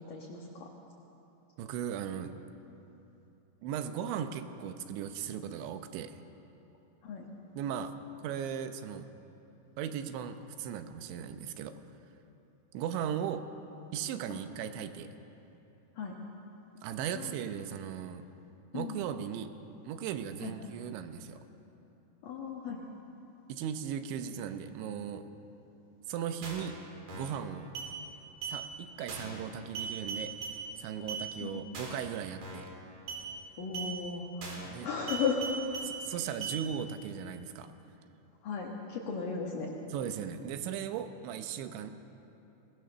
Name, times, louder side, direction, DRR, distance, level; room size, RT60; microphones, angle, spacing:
voice 1, 0.1-0.7 7.0-7.3 16.0-16.1 17.1-17.3 18.7-19.0 20.4-20.5 22.2-22.9 31.4-31.6 33.6-35.6 38.4-39.7, left 5 dB, 60° left, -2 dB, 2.6 m, -36 dB
voice 2, 1.6-2.3 3.6-6.2 7.5-9.0 9.8-11.7 12.7-13.5 13.9-15.1 16.8-18.2 18.7-19.5 19.8-21.4 23.5-25.3 26.1-26.8 27.1-27.7 28.5-30.3 30.8-32.7 34.6-34.9 35.8-37.7 39.9-41.9, right 8 dB, 75° right, 9 dB, 3.0 m, -37 dB
sound 1, 26.4-26.7 27.1-27.4 27.8-27.9 28.4-28.6 29.1-29.4 29.8-30.6 31.1-31.2 31.7-32.1 32.4-32.7 33.1-33.2 33.7-33.9 34.4-34.7 35.1-35.9 36.4-36.6, right 5 dB, 55° right, 5.5 m, -39 dB
23.5 x 18.5 x 6.8 m, 2.9 s
omnidirectional pair, 5.7 m